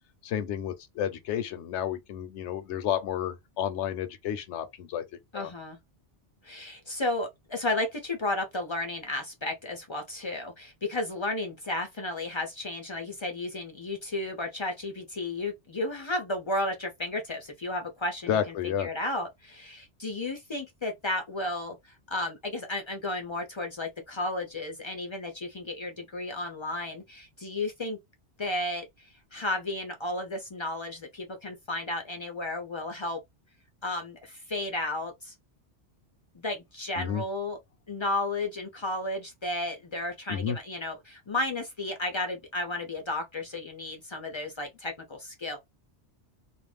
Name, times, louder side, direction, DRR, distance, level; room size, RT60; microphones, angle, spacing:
voice 1, 0.2-5.0 5.3-5.5 18.3-18.9 37.0-37.2 40.3-40.6, left 9 dB, 80° left, 0.9 m, -31 dB
voice 2, 5.3-5.8 6.4-28.0 28.4-33.2 33.8-35.3 36.3-37.6 37.9-45.6, left 2 dB, 50° left, 0.3 m, -33 dB
2.5 x 2.1 x 3.2 m
omnidirectional pair, 1.2 m